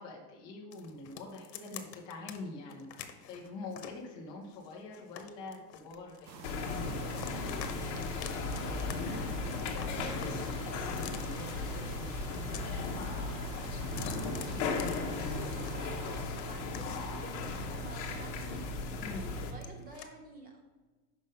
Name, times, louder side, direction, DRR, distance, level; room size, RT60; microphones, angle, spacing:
voice 1, 0.0-12.1 19.0-19.3, left 3 dB, 10° left, -3 dB, 0.4 m, -46 dB
sound 1, 0.7-2.4 2.7-4.0 4.5-6.5 6.8-7.7 8.0-8.9 9.2-11.5 12.1-13.1 13.4-15.7 16.1-18.9 19.3-20.1, left 10 dB, 80° left, 1.0 m, -48 dB
sound 2, 6.2-16.2, right 6 dB, 85° right, 0.9 m, -48 dB
sound 3, 6.4-19.5, left 3 dB, 45° left, 1.1 m, -36 dB
voice 2, 13.6-15.9 16.4-18.7 19.2-20.6, right 1 dB, 20° right, 2 dB, 0.8 m, -50 dB
5.4 x 5.3 x 5.3 m, 1.3 s
supercardioid pair, 170°, 49 cm